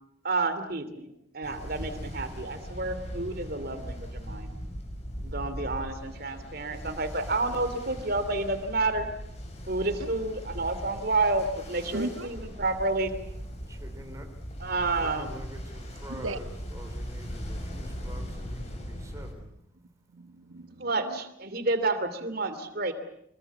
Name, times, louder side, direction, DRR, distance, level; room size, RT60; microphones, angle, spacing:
voice 1, 0.2-1.1 1.3-4.5 5.2-9.1 9.7-13.1 14.6-15.4 20.8-22.9, right 3 dB, 50° right, 10 dB, 3.0 m, -30 dB
Ocean, 1.4-19.3, equal, 35° left, 5.8 m, -39 dB
voice 2, 11.9-12.3 16.1-16.4 19.6-21.2, right 2 dB, 80° right, 10 dB, 1.8 m, -38 dB
voice 3, 13.7-14.3 15.0-19.5, right 1 dB, 15° right, 5 dB, 3.3 m, -46 dB
26.0 x 22.5 x 8.5 m, 0.77 s
head